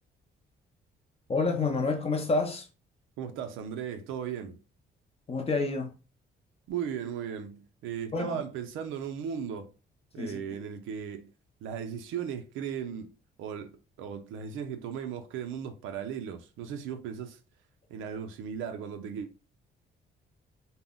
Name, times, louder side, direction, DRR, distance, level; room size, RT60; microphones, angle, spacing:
voice 1, 1.3-2.7 5.3-5.9 8.1-8.4 10.2-10.6, left 3 dB, 30° left, 0.6 m, -29 dB
voice 2, 3.2-4.6 6.7-9.7 10.1-11.3 11.6-17.4 17.9-19.5, right 8 dB, 90° right, 0.4 m, -37 dB
2.1 x 2.0 x 3.5 m
cardioid pair, 90°, 20 cm